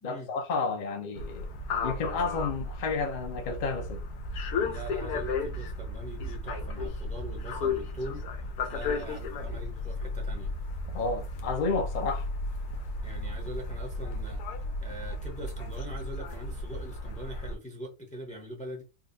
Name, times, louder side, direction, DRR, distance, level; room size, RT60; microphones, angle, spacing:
voice 1, 0.0-1.5 1.8-4.0 10.9-12.3, left 4 dB, 60° left, 0.5 m, -31 dB
sound 1, 1.2-17.6, left 3 dB, 80° left, 1.2 m, -34 dB
voice 2, 4.6-8.2 8.7-10.5 13.0-18.8, equal, 10° left, 0.5 m, -42 dB
3.6 x 2.4 x 2.6 m
omnidirectional pair, 1.6 m